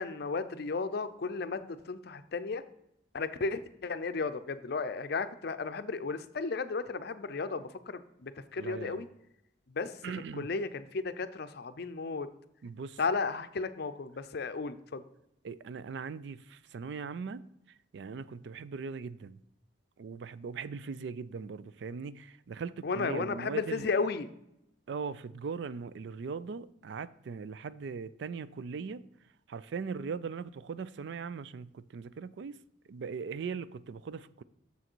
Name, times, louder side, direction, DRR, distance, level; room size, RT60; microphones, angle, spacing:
voice 1, 0.0-2.6 3.1-9.1 9.7-9.9 10.4-12.3 13.0-15.0 22.8-24.3, left 4 dB, 55° left, 0.5 m, -34 dB
voice 2, 8.6-9.1 10.0-10.5 12.6-13.0 15.4-17.4 17.9-19.4 20.0-23.9 24.9-29.0 29.5-32.6 32.9-34.4, right 5 dB, 60° right, 0.3 m, -39 dB
7.0 x 6.4 x 4.5 m
head